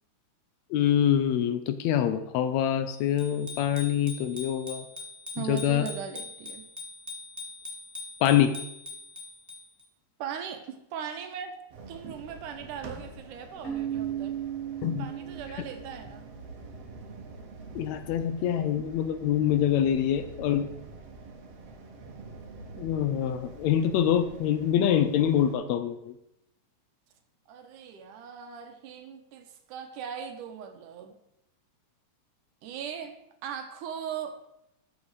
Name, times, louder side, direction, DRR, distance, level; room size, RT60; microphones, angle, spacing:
voice 1, 0.7-4.8 5.5-5.9 8.2-8.6 14.8-15.0 17.7-20.7 22.8-26.1, left 10 dB, 80° left, 11 dB, 1.6 m, -25 dB
Bicycle bell, 3.2-9.8, left 3 dB, 10° right, 1.3 m, -42 dB
voice 2, 5.3-6.7 10.2-11.6 11.9-14.4 15.0-16.3 27.5-31.1 32.6-33.2 33.4-34.4, right 8 dB, 75° right, 7 dB, 2.6 m, -39 dB
sound 1, 11.7-25.6, right 3 dB, 55° right, 2.0 m, -46 dB
Keyboard (musical), 13.6-16.3, right 10 dB, 25° left, 2.3 m, -35 dB
13.0 x 7.2 x 4.8 m, 0.83 s
omnidirectional pair, 3.8 m